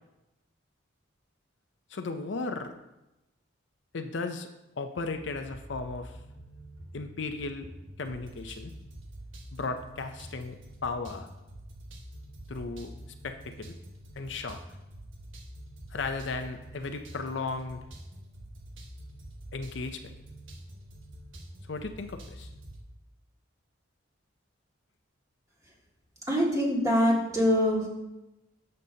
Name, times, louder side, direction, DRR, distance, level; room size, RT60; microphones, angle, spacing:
voice 1, 1.9-2.7 3.9-4.5 4.8-6.2 6.9-7.7 8.0-8.7 9.5-10.6 10.8-11.3 12.5-12.9 13.2-13.7 14.2-14.6 15.9-17.8 19.5-20.0 21.6-22.5, left 3 dB, 65° left, 7 dB, 0.5 m, -35 dB
sound 1, 5.1-22.8, right 1 dB, 75° right, 1.4 m, -47 dB
voice 2, 26.3-27.9, equal, 15° right, -4 dB, 2.0 m, -24 dB
12.0 x 6.6 x 2.8 m, 0.98 s
head